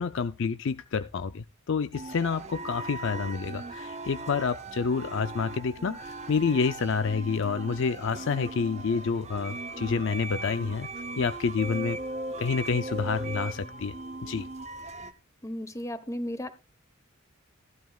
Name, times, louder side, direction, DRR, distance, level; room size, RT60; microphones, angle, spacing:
voice 1, 0.0-10.9 11.2-12.0 12.4-13.9 14.2-14.5, left 5 dB, 60° left, 12 dB, 0.5 m, -28 dB
sound 1, 1.9-15.1, right 2 dB, 30° right, 0.8 m, -38 dB
voice 2, 15.4-16.5, left 1 dB, 15° left, 12 dB, 1.0 m, -34 dB
14.5 x 12.5 x 2.3 m, 0.28 s
head